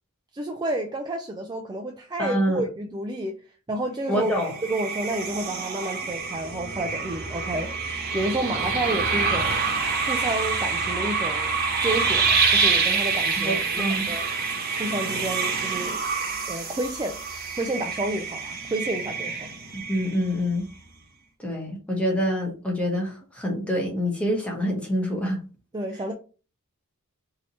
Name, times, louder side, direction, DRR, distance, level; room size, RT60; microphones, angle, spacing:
voice 1, 0.3-3.4 3.7-4.3 4.7-7.7 8.1-9.6 10.1-11.5 11.8-14.3 14.8-16.0 16.5-17.2 17.6-19.5 25.7-26.1, right 1 dB, 20° right, 0.3 m, -30 dB
voice 2, 2.2-2.6 4.1-4.5 13.4-14.1 19.7-20.7 21.4-25.4, equal, 5° left, 1.1 m, -26 dB
sound 1, 4.2-20.5, right 4 dB, 45° right, 1.0 m, -27 dB
3.4 x 2.8 x 4.1 m
head